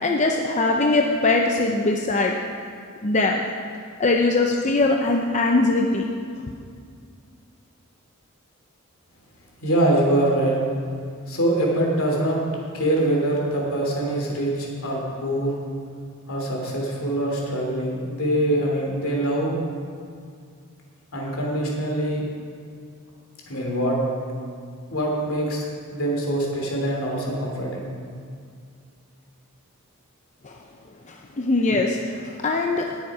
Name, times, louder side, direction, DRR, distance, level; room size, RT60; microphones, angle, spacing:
voice 1, 0.0-2.3 3.0-3.4 4.0-6.1 30.4-30.6 31.1-32.9, left 2 dB, 35° left, 1 dB, 0.7 m, -21 dB
voice 2, 9.6-10.6 11.3-12.4 12.7-15.5 16.3-19.5 21.1-22.3 23.5-24.0 24.9-25.6 25.9-27.9, right 1 dB, 70° left, -1 dB, 3.0 m, -24 dB
18.5 x 7.3 x 5.0 m, 2.3 s
head